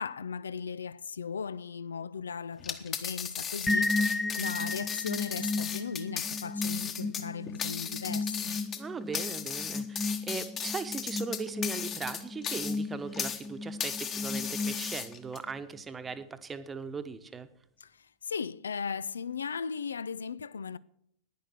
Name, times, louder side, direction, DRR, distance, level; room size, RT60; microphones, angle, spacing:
voice 1, 0.0-3.9 4.3-8.6 17.8-20.8, left 6 dB, 70° left, 0.4 m, -37 dB
sound 1, 2.6-13.5 13.8-15.4, left 7 dB, 30° left, 1.3 m, -36 dB
sound 2, 3.7-15.3, left 3 dB, 10° left, 0.6 m, -34 dB
voice 2, 8.8-17.5, right 5 dB, 15° right, 1.1 m, -39 dB
11.5 x 10.5 x 7.8 m
figure-of-eight pair, 90°, 0 cm